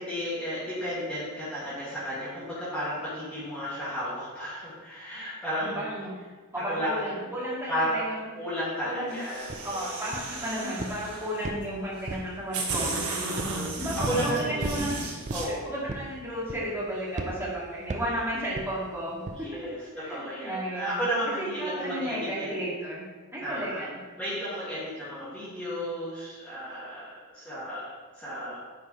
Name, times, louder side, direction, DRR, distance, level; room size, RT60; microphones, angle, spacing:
voice 1, 0.0-5.8 6.6-7.1 7.7-7.9 8.4-9.8 13.1-14.7 15.3-15.7 19.3-19.8 20.1-22.5 23.4-23.8 24.2-28.6, equal, 5° left, -13 dB, 2.2 m, -33 dB
voice 2, 5.6-6.1 6.5-8.2 8.8-9.2 9.6-13.0 13.8-15.0 15.4-19.5 19.8-21.0 21.4-23.1 23.3-24.0, equal, 10° right, -7 dB, 2.3 m, -33 dB
sound 1, 9.1-11.5 12.1-12.2 12.5-15.5, right 3 dB, 85° right, 1.5 m, -34 dB
sound 2, 9.5-9.6 10.1-10.4 10.8-11.1 11.4-12.3 12.7-13.0 13.4-13.6 14.0-14.2 14.6-14.9 15.3-15.5 15.9-16.2 16.5-16.8 17.2-17.4 17.9-18.2 18.6-18.7 19.3-19.4, right 2 dB, 35° right, 0.5 m, -35 dB
9.3 x 5.3 x 3.2 m, 1.4 s
head